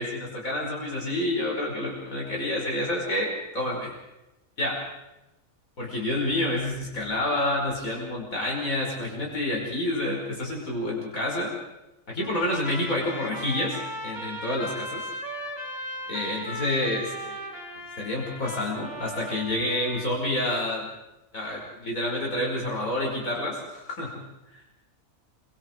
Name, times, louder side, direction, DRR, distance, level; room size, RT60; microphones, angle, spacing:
voice 1, 0.0-3.9 4.6-4.8 5.8-11.5 12.1-15.0 16.1-17.5 18.0-20.9 21.3-24.2 24.5-24.6, left 1 dB, 75° left, -2 dB, 5.9 m, -28 dB
Trumpet, 12.2-20.1, equal, 15° left, 4.9 m, -37 dB
26.5 x 24.5 x 4.8 m, 0.95 s
omnidirectional pair, 1.5 m